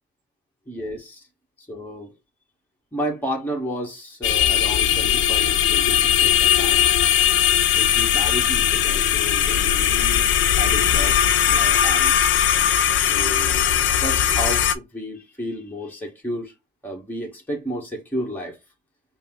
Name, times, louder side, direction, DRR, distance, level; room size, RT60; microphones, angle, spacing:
voice 1, 0.7-1.3 1.6-2.1 2.9-6.9 7.6-10.3 10.6-11.2 11.4-12.3 13.0-13.6 14.0-16.5 16.8-18.6, equal, 10° left, 1.7 m, -32 dB
sound 1, 4.2-14.7, left 10 dB, 75° left, 0.6 m, -19 dB
5.4 x 2.3 x 3.7 m
cardioid pair, 90°, 20 cm